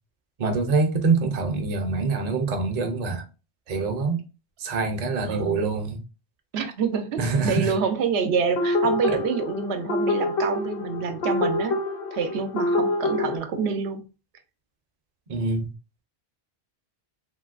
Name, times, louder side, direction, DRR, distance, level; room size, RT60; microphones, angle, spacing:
voice 1, 0.4-3.2 3.7-4.2 4.6-6.0 7.2-7.7 15.3-15.7, right 4 dB, 45° right, 0.6 m, -25 dB
voice 2, 5.3-5.6 6.5-11.8 12.1-14.0, right 5 dB, 80° right, 0.8 m, -27 dB
sound 1, 8.6-13.4, left 2 dB, 60° left, 1.0 m, -26 dB
3.1 x 2.8 x 2.4 m
omnidirectional pair, 1.1 m